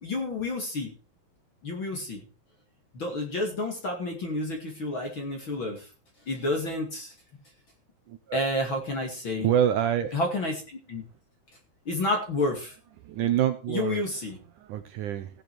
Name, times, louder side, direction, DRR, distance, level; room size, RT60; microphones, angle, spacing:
voice 1, 0.0-0.9 1.6-2.2 2.9-5.9 6.3-7.1 8.3-9.5 10.1-11.0 11.9-12.7 13.7-14.4, left 2 dB, 35° left, 2 dB, 2.4 m, -30 dB
voice 2, 8.1-8.4 9.4-10.1 13.0-14.2 14.6-15.4, right 10 dB, 80° right, 8 dB, 1.8 m, -27 dB
16.5 x 7.7 x 4.7 m, 0.33 s
omnidirectional pair, 4.7 m